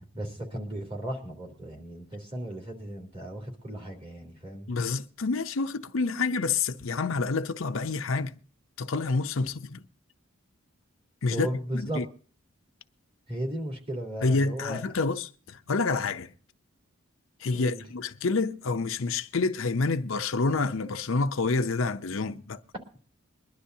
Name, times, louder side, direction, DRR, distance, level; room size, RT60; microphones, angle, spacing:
voice 1, 0.1-4.7 11.3-12.0 13.3-14.8 17.5-17.8, right 1 dB, 25° right, 3.4 m, -35 dB
voice 2, 4.7-8.3 8.8-9.8 11.2-11.5 11.7-12.1 14.2-16.3 17.4-22.6, left 4 dB, 70° left, 0.6 m, -28 dB
22.5 x 11.5 x 2.7 m
head